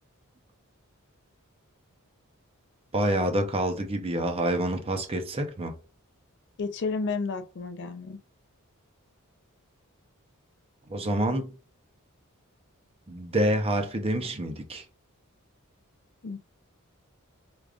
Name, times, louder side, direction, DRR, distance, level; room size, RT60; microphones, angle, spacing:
voice 1, 2.9-5.8 10.9-11.5 13.1-14.8, right 1 dB, 25° right, 0.6 m, -27 dB
voice 2, 6.6-8.2 10.9-11.1 16.2-16.4, left 4 dB, 55° left, 0.4 m, -32 dB
4.9 x 2.3 x 2.4 m
head